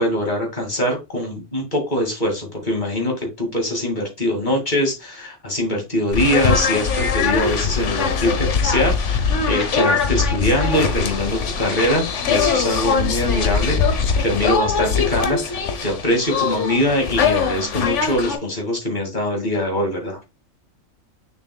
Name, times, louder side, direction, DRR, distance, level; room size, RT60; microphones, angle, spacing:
voice 1, 0.0-13.8 14.2-20.2, left 1 dB, 35° left, 2 dB, 2.5 m, -23 dB
sound 1, 6.1-18.4, left 5 dB, 65° left, 1.3 m, -21 dB
6.7 x 6.1 x 2.3 m, 0.24 s
omnidirectional pair, 1.4 m